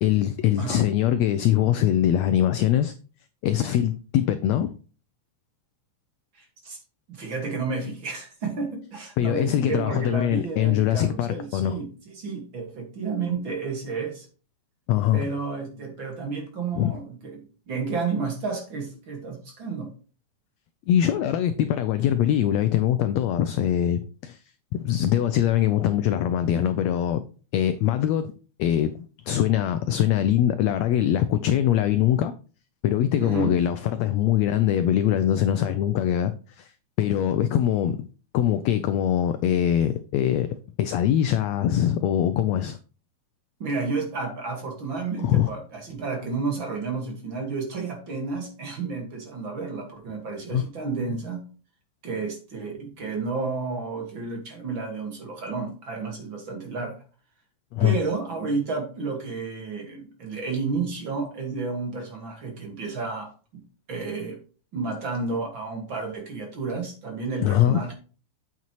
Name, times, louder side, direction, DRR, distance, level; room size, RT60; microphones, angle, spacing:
voice 1, 0.0-2.9 3.4-4.7 9.2-11.8 14.9-15.3 16.7-17.0 20.9-24.4 24.7-27.2 27.5-28.3 28.6-28.9 29.3-32.3 32.8-36.7 37.0-38.1 38.3-42.8 45.2-45.5 50.5-50.6 57.7-58.0 67.4-67.8, left 11 dB, 80° left, 1.5 m, -22 dB
voice 2, 6.3-6.8 7.1-14.3 15.1-19.9 33.2-33.6 43.6-51.4 52.0-57.0 57.8-63.6 63.9-64.4 64.7-67.9, right 4 dB, 45° right, 2.1 m, -31 dB
8.3 x 7.4 x 3.0 m
omnidirectional pair, 3.6 m